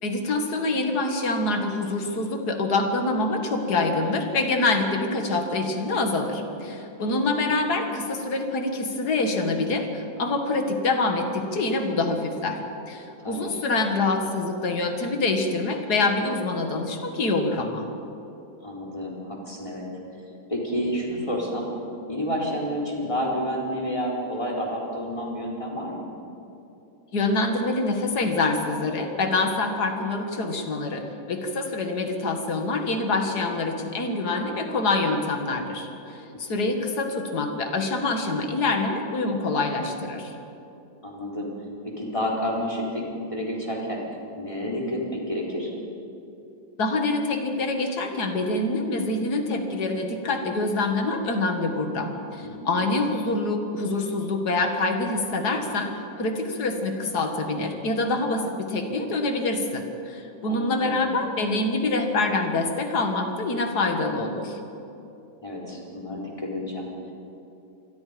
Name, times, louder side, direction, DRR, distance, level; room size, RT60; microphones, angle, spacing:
voice 1, 0.0-17.9 27.1-40.3 46.8-55.9 56.2-64.6, left 2 dB, 35° left, 4 dB, 2.0 m, -26 dB
voice 2, 13.2-13.5 18.6-19.9 20.5-21.7 22.1-26.0 36.3-36.7 41.0-41.5 41.8-44.0 44.4-45.7 52.4-52.9 60.5-61.0 65.4-67.1, equal, 10° left, -3 dB, 3.9 m, -30 dB
27.0 x 21.5 x 5.3 m, 2.9 s
omnidirectional pair, 3.7 m